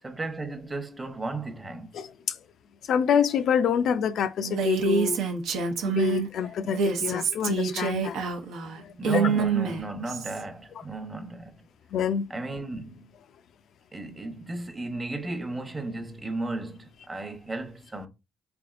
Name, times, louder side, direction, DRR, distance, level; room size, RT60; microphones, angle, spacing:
voice 1, 0.0-2.0 8.9-11.6 12.3-13.1 13.9-18.1, right 2 dB, 20° right, 0.8 m, -35 dB
voice 2, 2.9-5.2 5.8-8.2 11.9-12.2, left 7 dB, 70° left, 0.3 m, -26 dB
Female speech woman speaking, 4.4-6.3 6.6-10.4, right 5 dB, 85° right, 0.7 m, -27 dB
3.7 x 3.4 x 2.4 m
cardioid pair, 90°, 0 cm